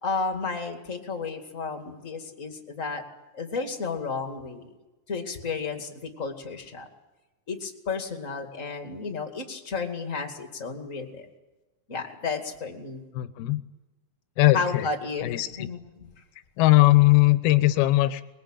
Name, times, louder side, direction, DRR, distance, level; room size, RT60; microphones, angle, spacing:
voice 1, 0.0-3.0 3.3-4.7 5.1-6.9 7.5-11.3 11.9-13.0 14.5-16.1, left 4 dB, 25° left, 4 dB, 2.1 m, -32 dB
voice 2, 13.1-13.6 14.4-14.9 15.2-15.7 16.6-18.2, left 18 dB, 85° left, 12 dB, 2.9 m, -20 dB
24.5 x 21.5 x 9.0 m, 1.1 s
omnidirectional pair, 4.3 m